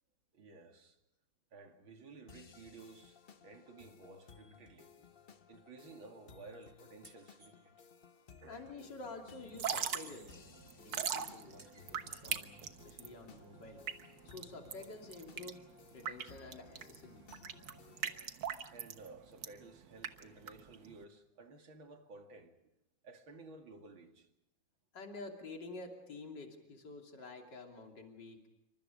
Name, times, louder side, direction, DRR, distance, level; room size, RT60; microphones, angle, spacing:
voice 1, 0.3-1.0 1.5-5.1 5.5-7.9 8.4-8.7 18.7-22.7 23.0-24.3, right 3 dB, 85° right, 3.1 m, -55 dB
sound 1, 2.3-18.3, left 6 dB, 40° left, 0.8 m, -60 dB
sound 2, 6.6-6.7 7.0-7.5 9.4-10.4 10.8-12.2, right 1 dB, 35° right, 4.7 m, -57 dB
voice 2, 8.5-10.5 10.8-13.8 14.3-15.6 15.9-17.4 24.9-28.4, left 3 dB, 60° left, 3.6 m, -49 dB
Drip / Trickle dribble, 9.4-21.0, right 8 dB, 65° right, 1.9 m, -41 dB
28.0 x 25.5 x 5.2 m
omnidirectional pair, 2.1 m